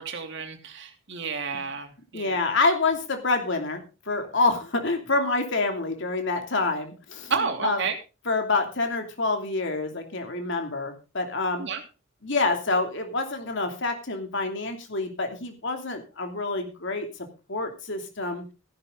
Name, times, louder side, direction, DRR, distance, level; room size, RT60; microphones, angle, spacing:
voice 1, 0.0-2.4 7.3-7.9 11.6-11.8, right 5 dB, 65° right, 5 dB, 2.8 m, -31 dB
voice 2, 2.1-7.8 8.3-11.7 12.2-17.1 17.5-18.4, left 3 dB, 65° left, 4 dB, 2.8 m, -27 dB
15.0 x 11.0 x 3.8 m, 0.31 s
head